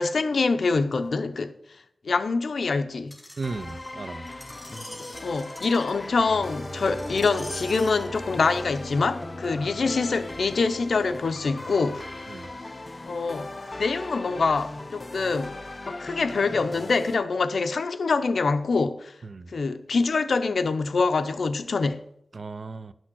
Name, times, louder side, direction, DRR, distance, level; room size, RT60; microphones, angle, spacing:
voice 1, 0.0-1.5 2.0-3.2 5.2-12.0 13.1-19.2 19.5-22.0, left 4 dB, 85° left, 0.7 m, -25 dB
Screech, 3.1-8.1 8.8-8.9, left 1 dB, 5° left, 2.8 m, -44 dB
sound 1, 3.4-17.2, left 2 dB, 35° left, 0.6 m, -39 dB
voice 2, 3.4-4.2 12.3-12.5 19.2-19.5 22.3-22.9, right 3 dB, 65° right, 0.5 m, -35 dB
sound 2, 6.2-12.2, equal, 15° right, 3.9 m, -42 dB
11.0 x 6.3 x 6.1 m
wide cardioid pair, 95°, 0 cm